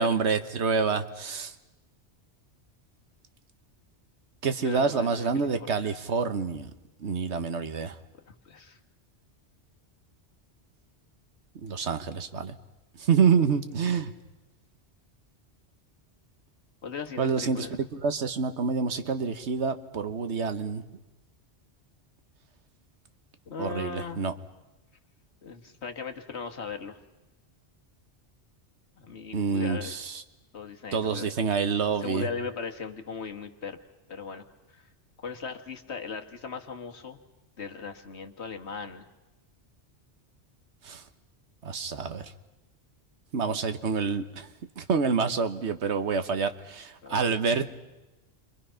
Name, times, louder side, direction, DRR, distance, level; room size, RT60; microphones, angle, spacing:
voice 1, 0.0-1.5 4.4-6.7 7.0-8.0 11.5-12.6 13.0-14.1 17.2-17.7 18.0-20.8 23.6-24.3 29.3-30.2 30.9-32.3 40.8-41.0 41.6-42.3 43.3-44.5 44.8-47.8, right 5 dB, 80° right, 9 dB, 1.5 m, -27 dB
voice 2, 4.6-5.5 5.7-5.9 8.2-8.8 16.8-17.7 23.5-24.2 25.4-27.0 29.0-29.9 30.5-31.3 32.0-33.8 34.1-34.9 35.2-37.2 37.6-39.1 47.0-47.2, left 5 dB, 70° left, 5 dB, 1.8 m, -38 dB
29.0 x 24.0 x 5.7 m, 1.0 s
omnidirectional pair, 1.1 m